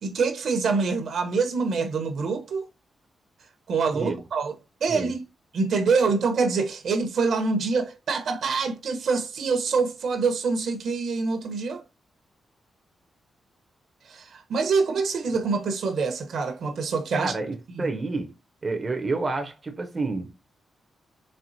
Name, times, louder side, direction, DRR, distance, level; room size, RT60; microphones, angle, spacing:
voice 1, 0.0-2.7 3.7-4.5 4.8-5.2 5.5-11.8 14.1-17.3 17.8-17.9, right 4 dB, 65° right, 0.8 m, -25 dB
voice 2, 17.1-18.3 18.6-20.5, right 3 dB, 25° right, 0.6 m, -29 dB
4.3 x 3.4 x 2.6 m
wide cardioid pair, 155°, 0 cm